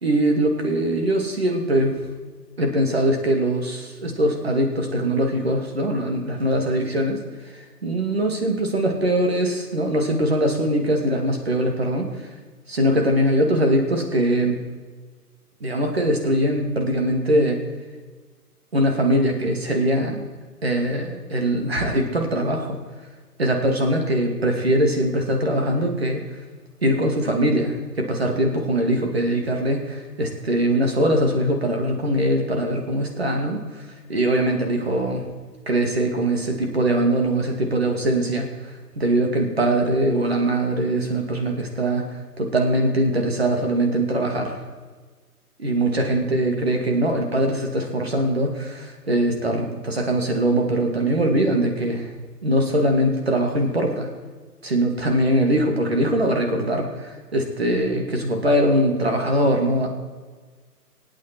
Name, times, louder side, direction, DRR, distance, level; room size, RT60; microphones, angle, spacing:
voice 1, 0.0-2.0 2.6-7.2 7.5-12.3 12.7-14.6 15.6-17.6 18.7-20.2 20.6-22.8 23.4-26.2 26.8-33.8 34.1-35.2 35.7-38.5 39.0-42.1 42.4-44.6 45.6-52.1 52.4-54.1 54.6-59.9, right 1 dB, 40° right, 3 dB, 2.4 m, -22 dB
24.5 x 8.9 x 4.5 m, 1.4 s
figure-of-eight pair, 175°, 47 cm